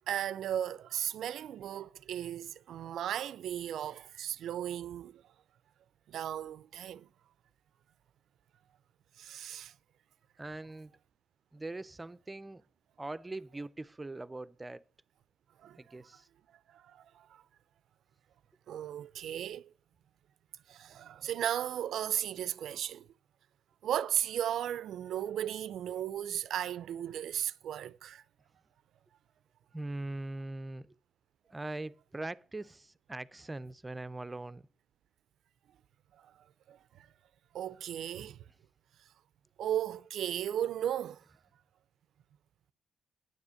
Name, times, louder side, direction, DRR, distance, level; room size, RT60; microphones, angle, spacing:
voice 1, 0.1-5.2 6.1-7.1 9.2-9.7 15.6-15.8 16.7-17.3 18.7-19.7 20.7-23.1 23.8-28.2 36.7-36.8 37.5-38.4 39.6-41.2, right 10 dB, 80° right, 0.4 m, -35 dB
voice 2, 10.4-10.9 11.5-12.6 13.0-14.8 15.8-16.3 29.7-30.9 31.5-34.6, right 2 dB, 20° right, 0.5 m, -41 dB
9.7 x 7.3 x 6.3 m
supercardioid pair, 60°, 0 cm